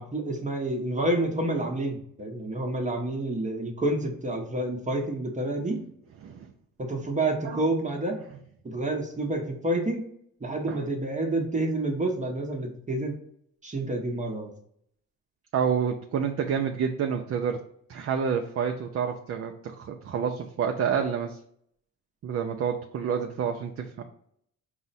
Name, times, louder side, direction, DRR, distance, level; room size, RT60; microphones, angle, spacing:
voice 1, 0.0-5.8 6.8-8.2 8.6-10.0 10.4-13.2 13.6-14.5, right 1 dB, 20° right, 2 dB, 0.8 m, -29 dB
voice 2, 15.5-17.6 17.9-21.4 22.2-24.0, right 7 dB, 45° right, 4 dB, 0.4 m, -28 dB
4.8 x 2.1 x 4.0 m, 0.68 s
cardioid pair, 85°, 35 cm